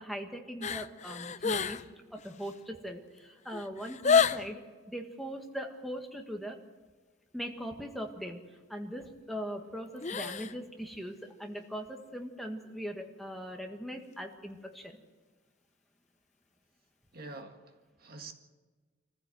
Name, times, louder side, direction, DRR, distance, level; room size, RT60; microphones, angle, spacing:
voice 1, 0.0-1.8 2.1-4.6 4.9-6.6 7.3-8.4 8.7-15.0, equal, ahead, 1.7 m, -40 dB
sound 1, 0.6-1.9 2.2-2.6 3.2-3.3 3.5-4.5 10.0-10.6 10.9-11.0, left 6 dB, 35° left, 0.6 m, -29 dB
voice 2, 17.1-18.3, right 3 dB, 45° right, 1.9 m, -46 dB
24.0 x 15.0 x 7.8 m
head